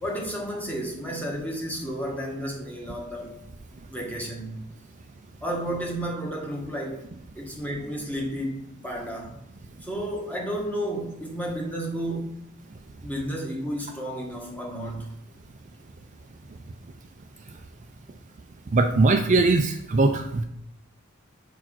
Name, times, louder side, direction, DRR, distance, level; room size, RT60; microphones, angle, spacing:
voice 1, 0.0-3.4 3.9-4.7 5.4-7.1 7.3-9.4 9.8-12.5 13.0-15.1, equal, 10° left, -1 dB, 1.4 m, -32 dB
voice 2, 18.7-20.4, right 3 dB, 35° right, 5 dB, 0.4 m, -20 dB
4.8 x 4.6 x 6.0 m, 0.78 s
head